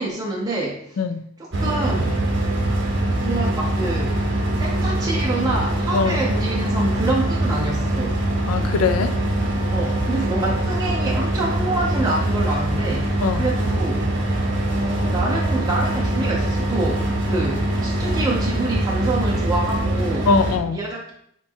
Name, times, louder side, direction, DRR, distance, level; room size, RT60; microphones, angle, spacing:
voice 1, 0.0-1.0 1.4-2.2 3.2-4.2 4.6-8.2 9.7-14.1 14.7-20.3 20.7-21.1, right 2 dB, 15° right, -3 dB, 0.5 m, -26 dB
voice 2, 1.0-1.3 5.9-6.2 8.5-9.1 13.2-13.4 20.3-20.8, left 4 dB, 80° left, 11 dB, 0.3 m, -21 dB
sound 1, 1.5-20.6, right 1 dB, 55° right, 0.7 m, -23 dB
4.3 x 2.2 x 4.3 m, 0.72 s
head